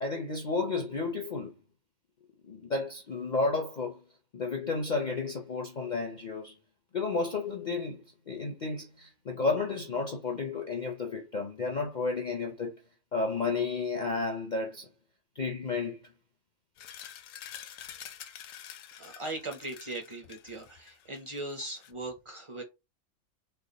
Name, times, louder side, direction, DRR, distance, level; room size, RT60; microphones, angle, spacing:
voice 1, 0.0-1.6 2.4-4.0 4.3-6.6 6.9-12.7 13.1-14.9 15.4-16.0, left 3 dB, 55° left, 0.5 m, -32 dB
sound 1, 16.8-21.9, left 10 dB, 70° left, 0.9 m, -47 dB
voice 2, 18.9-22.6, right 2 dB, 30° right, 0.6 m, -39 dB
3.3 x 2.1 x 3.8 m
omnidirectional pair, 1.5 m